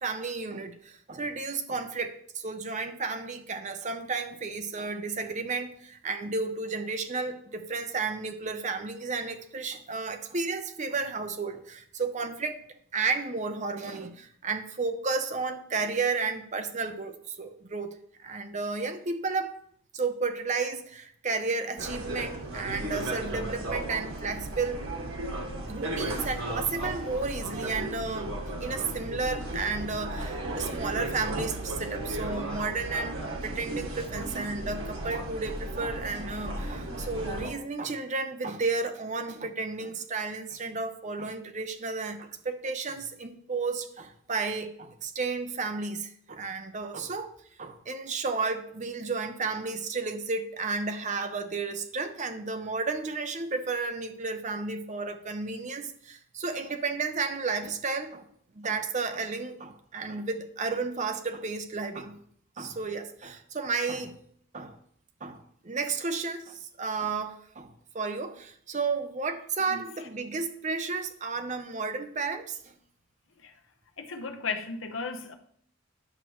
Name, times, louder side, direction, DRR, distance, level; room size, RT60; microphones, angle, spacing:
voice 1, 0.0-12.6 12.9-17.9 18.2-19.5 19.9-24.8 25.7-28.3 28.6-33.2 33.4-47.3 47.6-58.2 58.5-62.2 62.6-64.1 64.5-64.8 65.2-72.7, right 4 dB, 35° right, 0.7 m, -32 dB
sound 1, 21.8-37.5, right 1 dB, 85° right, 1.5 m, -35 dB
voice 2, 74.0-75.3, left 4 dB, 70° left, 0.8 m, -35 dB
9.8 x 6.6 x 3.1 m
head